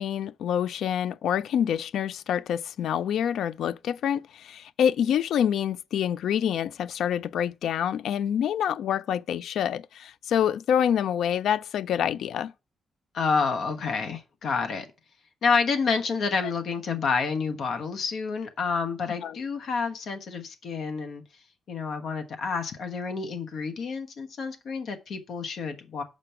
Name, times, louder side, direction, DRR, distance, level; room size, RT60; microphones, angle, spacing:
voice 1, 0.0-12.5 16.4-16.5 19.2-19.4, left 9 dB, 75° left, 0.3 m, -27 dB
voice 2, 13.1-14.9 15.4-21.2 21.7-26.0, left 5 dB, 55° left, 1.2 m, -29 dB
6.7 x 5.3 x 5.7 m
wide cardioid pair, 175°, 0 cm